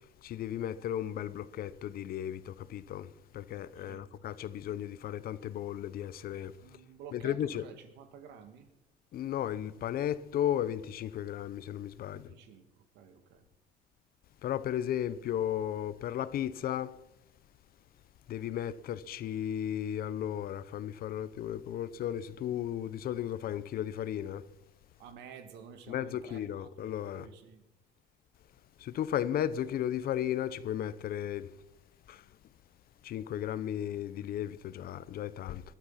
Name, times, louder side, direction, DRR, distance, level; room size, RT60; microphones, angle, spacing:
voice 1, 0.2-3.1 3.3-6.5 7.1-7.6 9.1-12.3 14.4-16.9 18.3-24.4 25.9-27.3 28.8-31.5 32.1-32.2 33.0-35.6, left 10 dB, 60° left, 0.8 m, -35 dB
voice 2, 3.8-4.1 6.6-8.7 12.1-13.4 25.0-27.6, right 7 dB, 90° right, 1.8 m, -51 dB
20.0 x 12.0 x 5.8 m
cardioid pair, 110°, 17 cm